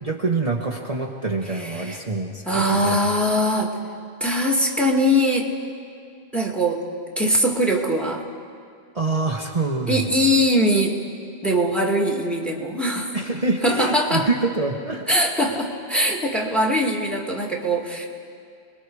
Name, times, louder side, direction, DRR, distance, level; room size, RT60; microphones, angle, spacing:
voice 1, 0.0-3.0 8.9-10.1 13.1-15.1 15.4-15.6, right 3 dB, 35° right, -1 dB, 1.2 m, -25 dB
voice 2, 1.5-2.0 2.4-3.7 4.2-5.5 6.3-6.8 7.2-8.2 9.9-11.0 11.4-13.2 13.6-14.3 15.1-18.0, equal, ahead, 1 dB, 2.1 m, -21 dB
30.0 x 20.5 x 4.8 m, 2.4 s
omnidirectional pair, 1.1 m